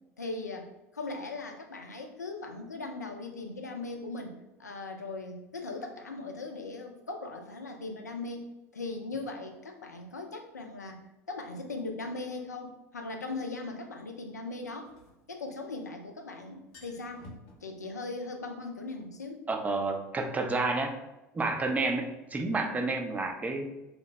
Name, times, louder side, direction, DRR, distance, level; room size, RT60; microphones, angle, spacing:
voice 1, 0.2-8.5 8.7-14.9 15.3-17.3 17.6-19.5, left 3 dB, 85° left, 3 dB, 0.4 m, -39 dB
sound 1, 12.2-12.3 14.6-15.9 16.2-16.3 16.6-17.6, left 1 dB, 50° left, 0.7 m, -51 dB
voice 2, 19.5-20.9 21.3-23.7, right 3 dB, 15° right, 4 dB, 0.4 m, -30 dB
2.9 x 2.0 x 3.1 m, 0.99 s
figure-of-eight pair, 70°, 9 cm